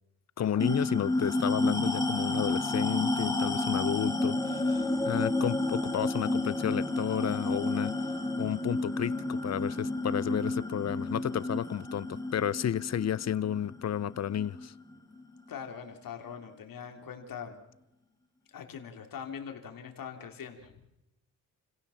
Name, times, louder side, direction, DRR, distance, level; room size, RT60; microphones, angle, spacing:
voice 1, 0.4-7.9 8.4-14.7, left 10 dB, 45° left, 0.7 m, -32 dB
sound 1, 0.6-15.4, left 2 dB, 10° left, 2.7 m, -31 dB
voice 2, 15.5-17.6 18.5-20.7, left 7 dB, 65° left, 3.4 m, -42 dB
29.5 x 16.5 x 7.2 m
cardioid pair, 90°, 36 cm